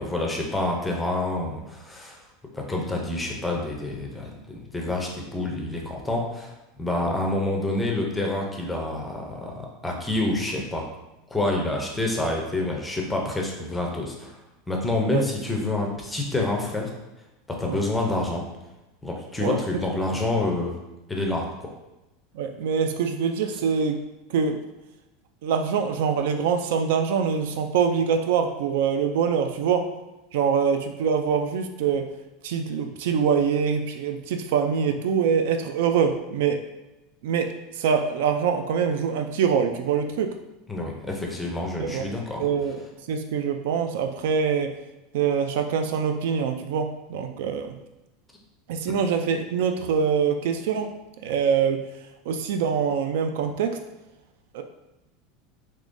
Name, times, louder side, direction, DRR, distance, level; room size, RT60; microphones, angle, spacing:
voice 1, 0.0-2.2 2.5-6.5 6.8-10.8 11.3-14.4 14.7-16.9 17.5-18.4 19.0-20.7 21.1-21.7 40.7-42.4 48.9-49.0, left 2 dB, 5° left, 0 dB, 0.5 m, -27 dB
voice 2, 22.3-24.0 24.3-24.6 25.4-29.9 30.3-32.1 32.4-36.6 37.2-40.3 41.8-42.1 42.4-44.8 45.1-47.7 48.7-51.0 51.2-51.8 52.3-53.8 54.5-54.6, right 6 dB, 70° right, 6 dB, 0.3 m, -24 dB
3.5 x 3.0 x 2.5 m, 1.0 s
supercardioid pair, 165°, 0 cm